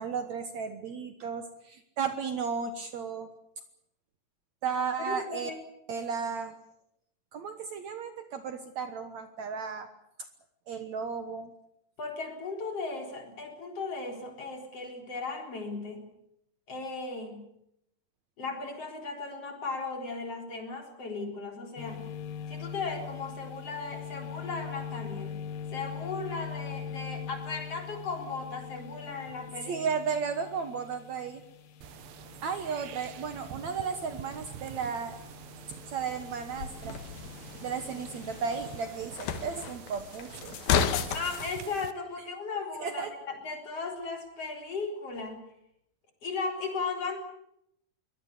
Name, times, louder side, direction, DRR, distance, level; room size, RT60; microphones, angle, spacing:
voice 1, 0.0-3.3 4.6-5.5 5.9-6.5 7.3-9.9 10.7-11.5 29.7-31.4 32.4-35.2 35.9-37.0 37.6-40.6 42.8-43.1, right 6 dB, 60° right, 8 dB, 2.2 m, -34 dB
voice 2, 5.0-5.6 12.0-16.1 16.7-17.5 18.4-22.1 22.5-25.4 25.7-29.8 41.1-45.4 46.2-47.2, left 4 dB, 40° left, 3 dB, 4.8 m, -36 dB
sound 1, 21.8-38.8, left 7 dB, 65° left, 1.4 m, -43 dB
sound 2, 31.8-41.9, right 12 dB, 85° right, 2.8 m, -47 dB
sound 3, 36.6-41.6, left 7 dB, 85° left, 3.3 m, -33 dB
23.5 x 19.0 x 8.2 m, 0.77 s
omnidirectional pair, 4.1 m